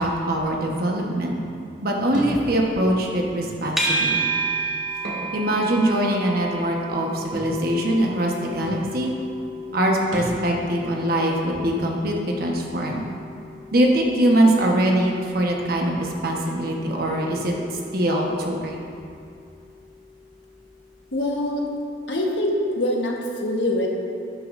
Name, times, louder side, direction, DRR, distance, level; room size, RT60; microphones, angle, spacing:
voice 1, 0.0-1.3 1.8-4.2 5.3-9.2 9.7-13.1 13.7-17.5 17.9-18.8, right 1 dB, 55° right, 0 dB, 1.2 m, -22 dB
Thump thud, 2.1-2.4 3.4-3.6 4.9-5.3 5.7-5.8 7.3-7.5 8.3-8.4 8.6-8.9 10.1-10.4, right 1 dB, 85° right, 2.1 m, -31 dB
sound 1, 3.8-21.0, right 2 dB, ahead, 1.3 m, -33 dB
voice 2, 21.1-21.6 22.1-23.1 23.4-23.9, left 1 dB, 85° left, -1 dB, 1.3 m, -23 dB
11.5 x 9.5 x 2.6 m, 2.6 s
head